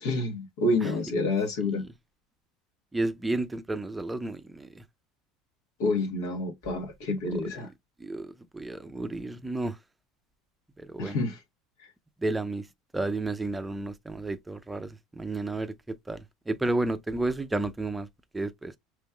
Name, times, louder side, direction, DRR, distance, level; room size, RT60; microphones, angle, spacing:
voice 1, 0.0-1.8 5.8-7.7 11.0-11.4, left 2 dB, 80° left, 1.5 m, -28 dB
voice 2, 2.9-4.8 8.0-9.8 10.8-11.2 12.2-12.6 12.9-15.7 16.1-18.1 18.3-18.7, right 2 dB, 10° right, 0.5 m, -31 dB
5.2 x 3.1 x 2.3 m
supercardioid pair, 120°, 0 cm